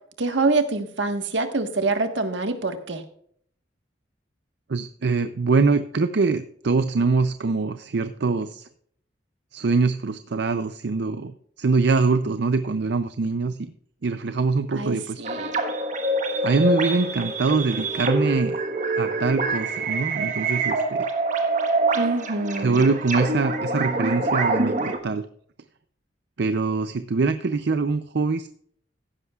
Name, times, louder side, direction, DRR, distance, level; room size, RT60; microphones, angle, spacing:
voice 1, 0.2-3.0 14.7-15.5 21.9-22.8, right 3 dB, 80° right, 7 dB, 1.5 m, -25 dB
voice 2, 4.7-8.7 9.5-13.7 14.0-15.2 16.4-18.6 18.9-21.1 22.6-25.3 26.4-28.5, right 4 dB, 65° right, 10 dB, 0.5 m, -23 dB
sound 1, 15.2-25.0, right 2 dB, 45° right, 1.3 m, -25 dB
15.0 x 11.0 x 2.4 m, 0.62 s
head